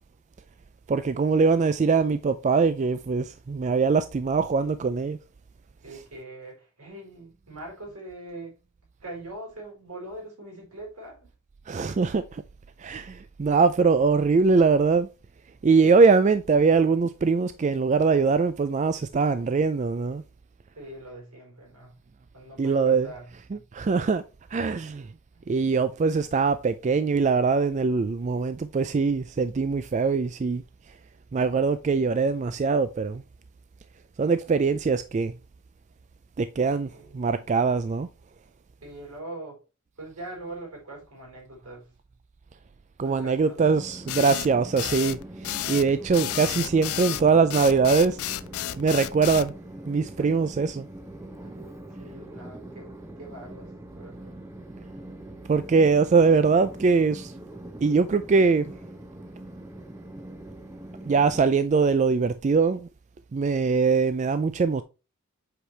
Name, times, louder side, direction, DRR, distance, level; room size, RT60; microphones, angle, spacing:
voice 1, 0.9-5.2 11.7-12.4 12.8-15.1 15.6-20.2 22.6-23.1 23.5-24.2 24.5-25.1 25.5-30.6 31.3-33.2 34.2-35.3 36.4-38.1 43.0-48.2 48.8-49.5 49.9-50.9 55.5-57.3 57.8-58.7 61.1-62.9 63.3-64.8, right 4 dB, 30° right, 0.3 m, -22 dB
voice 2, 5.8-8.6 9.0-11.3 20.7-22.0 22.3-23.3 24.7-24.8 25.3-25.4 36.9-37.2 38.8-39.6 40.0-41.9 43.0-43.7 50.2-50.3 51.4-51.7 52.0-54.3, right 1 dB, 80° right, 4.4 m, -42 dB
Train, 43.6-61.4, right 1 dB, 10° right, 0.7 m, -43 dB
sound 1, 44.1-49.5, left 12 dB, 75° left, 0.5 m, -31 dB
7.9 x 4.9 x 3.2 m
head